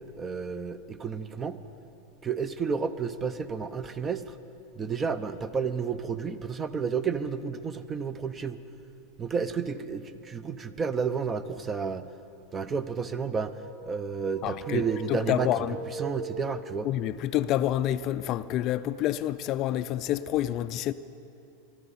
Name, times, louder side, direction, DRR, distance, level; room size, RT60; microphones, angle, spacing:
voice 1, 0.0-1.6 2.2-4.4 4.8-8.6 9.2-12.1 12.5-13.5 13.8-15.5 16.0-16.9, right 6 dB, 25° right, 0.7 m, -31 dB
sound 1, 13.5-17.1, right 3 dB, 55° right, 2.1 m, -40 dB
voice 2, 14.4-14.8 15.1-15.8 16.8-20.9, left 13 dB, 45° left, 0.4 m, -28 dB
22.0 x 12.5 x 4.2 m
hypercardioid pair, 110°, 0 cm